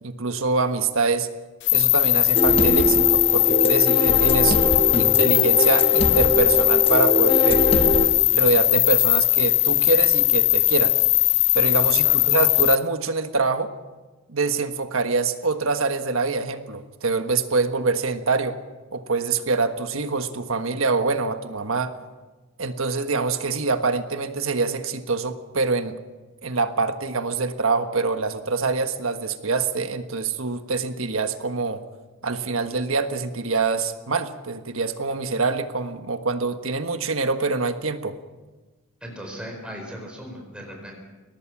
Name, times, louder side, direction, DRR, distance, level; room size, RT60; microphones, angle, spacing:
voice 1, 0.0-1.3 1.7-4.6 4.9-7.6 8.3-10.9 11.5-13.7 14.3-18.6 18.9-21.9 22.6-26.0 26.4-31.8 32.2-38.2, right 4 dB, 75° right, 8 dB, 1.4 m, -25 dB
sound 1, 1.6-12.8, left 17 dB, 60° left, 0.6 m, -19 dB
sound 2, 2.4-8.1, equal, 25° left, 1.4 m, -22 dB
voice 2, 39.0-41.0, equal, 5° right, 0 dB, 4.5 m, -37 dB
22.5 x 19.0 x 6.1 m, 1.2 s
head